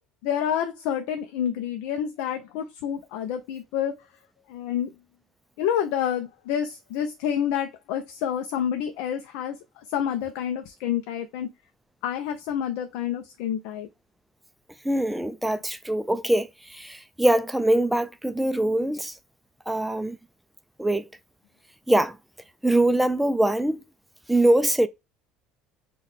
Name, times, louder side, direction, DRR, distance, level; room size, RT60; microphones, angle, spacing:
voice 1, 0.2-4.0 4.5-4.9 5.6-11.5 12.0-13.9, left 9 dB, 80° left, 0.4 m, -28 dB
voice 2, 14.8-19.1 19.7-20.2 20.8-21.1 21.9-22.2 22.6-23.8 24.3-24.9, right 1 dB, 5° right, 0.3 m, -23 dB
3.8 x 2.2 x 3.0 m
supercardioid pair, 105°, 0 cm